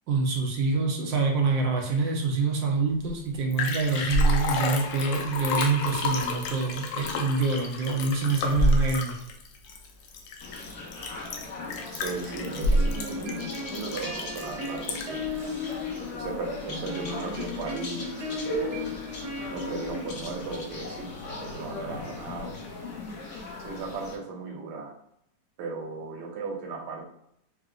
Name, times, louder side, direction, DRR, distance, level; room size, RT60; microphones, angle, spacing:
voice 1, 0.1-9.1, right 4 dB, 90° right, 1 dB, 1.4 m, -26 dB
Liquid, 3.1-3.2 3.3-15.3 15.7-15.8, left 1 dB, 80° left, 1.2 m, -28 dB
sound 1, 10.4-24.2, left 2 dB, 65° left, 0.8 m, -38 dB
voice 2, 11.9-15.9 16.2-18.9 19.5-21.1 21.4-22.5 23.6-24.9 25.6-27.1, right 3 dB, 70° right, 0 dB, 1.3 m, -36 dB
sound 2, 12.5-20.5, left 3 dB, 55° right, 0.9 m, -37 dB
4.8 x 2.0 x 2.4 m, 0.74 s
omnidirectional pair, 2.0 m